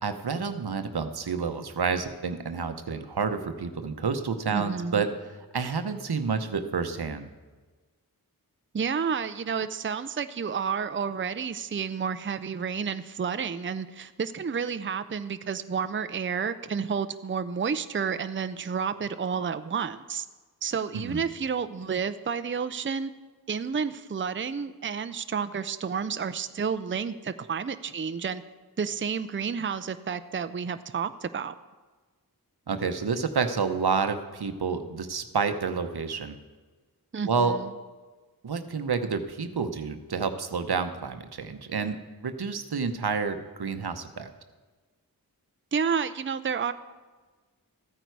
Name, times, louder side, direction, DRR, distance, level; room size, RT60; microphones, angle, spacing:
voice 1, 0.0-5.1 5.5-7.3 20.9-21.2 32.7-36.4 37.3-37.6 38.4-42.0 42.2-44.3, right 5 dB, 85° right, 8 dB, 0.9 m, -29 dB
voice 2, 4.5-5.1 8.7-20.3 20.6-23.1 23.5-28.4 28.8-31.5 37.1-37.7 45.7-46.7, right 6 dB, 30° right, 11 dB, 0.5 m, -30 dB
14.0 x 9.1 x 4.7 m, 1.3 s
wide cardioid pair, 45°, 38 cm